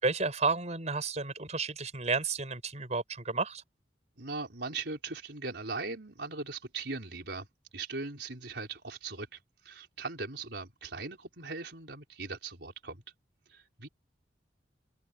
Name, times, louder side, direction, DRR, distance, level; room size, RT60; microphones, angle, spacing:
voice 1, 0.0-3.6, right 4 dB, 40° right, 5.4 m, -31 dB
voice 2, 4.2-7.5 7.7-9.4 9.6-13.0 13.5-13.9, right 3 dB, 75° right, 4.6 m, -39 dB
open air
head